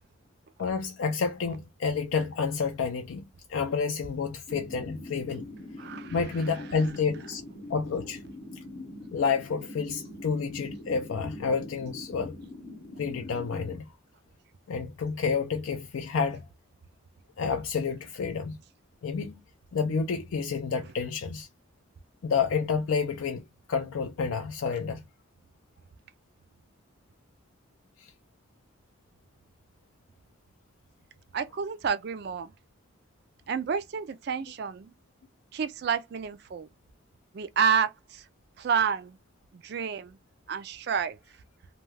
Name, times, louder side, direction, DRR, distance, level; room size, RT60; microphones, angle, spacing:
voice 1, 0.6-5.5 6.1-7.4 7.7-8.2 9.1-12.4 13.0-13.9 14.7-16.5 17.4-18.6 19.0-19.4 19.7-21.5 22.2-23.4 23.7-25.0 28.0-28.1, left 5 dB, 75° left, 0.4 m, -29 dB
sound 1, 4.5-13.8, left 2 dB, 55° left, 0.7 m, -43 dB
voice 2, 5.8-6.1 31.3-32.5 33.5-34.9 35.5-36.7 37.3-37.9 38.6-39.1 39.6-40.1 40.5-41.2, right 6 dB, 50° right, 0.3 m, -29 dB
2.3 x 2.2 x 3.2 m
head